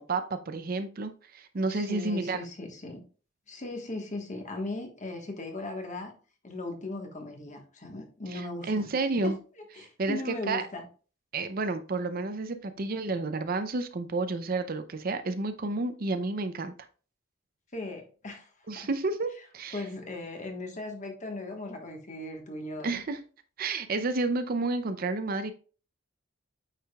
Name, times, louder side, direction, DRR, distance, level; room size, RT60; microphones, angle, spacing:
voice 1, 0.0-2.4 8.3-9.4 9.8-10.2 10.5-10.7 11.3-16.7 18.7-19.8 22.8-23.2 23.6-25.5, right 3 dB, 45° right, 10 dB, 0.5 m, -31 dB
voice 2, 1.7-3.0 3.5-6.1 6.4-8.9 9.2-9.4 9.7-10.8 17.7-18.9 19.7-23.0, left 2 dB, 40° left, 3 dB, 1.3 m, -38 dB
9.0 x 4.9 x 2.3 m, 0.38 s
head